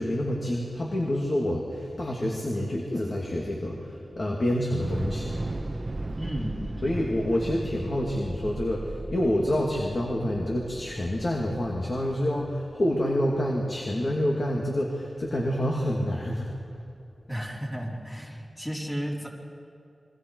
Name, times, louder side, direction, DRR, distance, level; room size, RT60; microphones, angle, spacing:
voice 1, 0.0-5.3 6.8-16.5, left 1 dB, 45° left, -2 dB, 2.6 m, -27 dB
Thunder / Explosion, 4.7-12.9, right 2 dB, 30° right, 1.0 m, -37 dB
voice 2, 6.2-7.0 7.3-7.5 17.3-19.3, equal, 15° left, -4 dB, 3.7 m, -34 dB
28.5 x 23.0 x 4.8 m, 2.5 s
wide cardioid pair, 110°, 0 cm